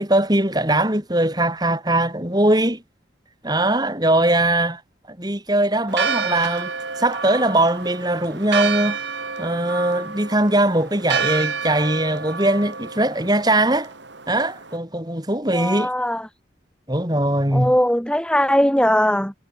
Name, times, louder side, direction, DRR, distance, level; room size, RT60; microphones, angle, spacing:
voice 1, 0.0-2.8 3.4-4.8 5.1-6.7 7.0-9.0 9.4-13.9 14.3-15.9 16.9-17.7, right 1 dB, 20° right, 4.1 m, -20 dB
Church bell, 5.9-14.8, right 5 dB, 70° right, 4.8 m, -29 dB
voice 2, 15.5-16.3 17.5-19.3, equal, 5° left, 2.4 m, -19 dB
head